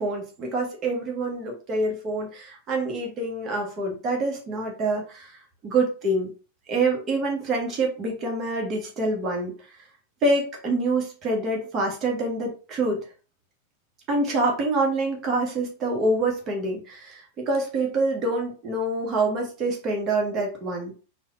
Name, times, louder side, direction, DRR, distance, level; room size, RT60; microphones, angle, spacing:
voice 1, 0.0-5.4 5.6-6.3 6.7-9.5 10.2-13.0 14.1-20.9, right 2 dB, 30° right, 0 dB, 0.8 m, -26 dB
3.2 x 2.1 x 2.3 m, 0.36 s
figure-of-eight pair, 90°, 0 cm